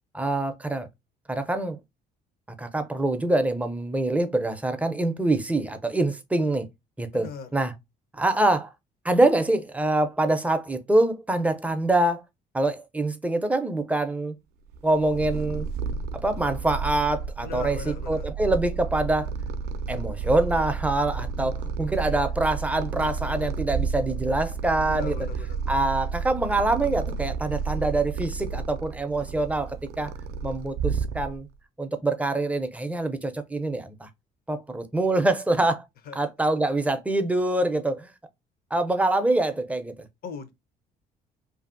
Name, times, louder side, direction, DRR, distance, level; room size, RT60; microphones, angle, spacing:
voice 1, 0.1-0.9 1.3-1.8 2.6-6.7 7.0-7.7 8.1-8.7 9.0-12.2 12.5-14.3 14.8-15.7 16.1-19.3 19.9-25.2 25.7-30.1 30.4-31.5 31.8-34.1 34.5-35.8 36.2-38.1 38.7-40.1, right 2 dB, 10° right, 0.4 m, -25 dB
voice 2, 7.1-7.5 17.4-18.3 24.9-25.6 36.1-36.2 40.2-40.5, left 6 dB, 60° left, 0.7 m, -38 dB
Purr, 14.7-31.6, right 5 dB, 75° right, 0.4 m, -31 dB
2.7 x 2.6 x 2.5 m
cardioid pair, 110°, 17 cm